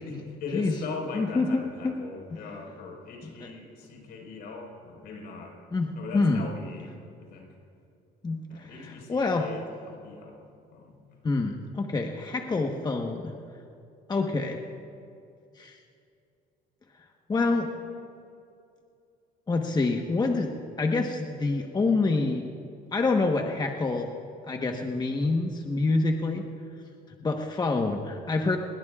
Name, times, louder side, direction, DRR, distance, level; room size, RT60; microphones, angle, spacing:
voice 1, 0.0-5.6 5.9-7.5 8.5-10.4 10.7-11.0, left 4 dB, 75° left, 0 dB, 4.7 m, -40 dB
voice 2, 1.1-1.9 3.2-3.3 5.7-6.5 8.2-9.5 11.2-13.3 14.1-14.6 15.6-15.8 17.3-17.7 19.5-20.5 20.8-22.4 22.9-24.1 24.5-26.5 27.2-28.6, left 3 dB, 25° left, 3 dB, 1.2 m, -27 dB
24.5 x 21.0 x 2.4 m, 2.5 s
cardioid pair, 110°, 17 cm